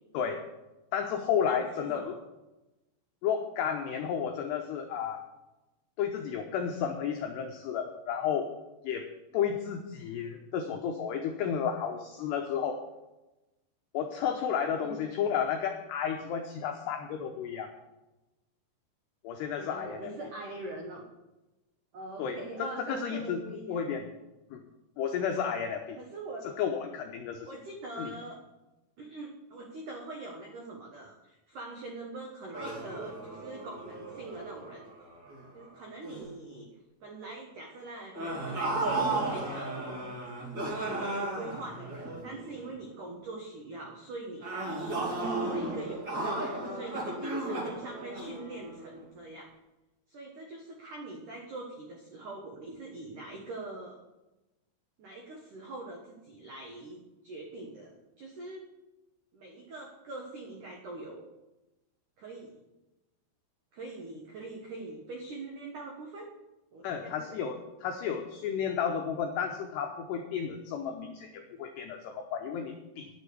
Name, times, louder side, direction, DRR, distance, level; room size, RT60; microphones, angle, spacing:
voice 1, 0.9-2.1 3.2-5.2 6.0-8.5 8.8-9.1 9.3-12.8 13.9-17.7 19.2-20.0 22.2-23.4 23.7-24.1 24.5-24.6 25.0-26.0 26.4-27.5 28.0-28.1 66.8-73.1, left 7 dB, 90° left, 3 dB, 2.3 m, -32 dB
voice 2, 1.5-2.2 10.3-10.4 14.8-15.0 19.6-21.0 21.9-23.9 26.0-26.5 27.5-28.4 29.0-35.2 35.5-36.7 37.0-40.1 40.9-49.5 50.1-54.0 55.0-58.6 59.3-61.3 62.2-62.6 63.7-66.3 66.7-67.4, right 2 dB, 80° right, 0 dB, 1.8 m, -43 dB
sound 1, 32.5-35.6 36.0-36.3 38.1-42.7 44.4-49.0, right 2 dB, 30° right, 2.5 m, -35 dB
11.0 x 7.2 x 8.4 m, 1.0 s
omnidirectional pair, 6.0 m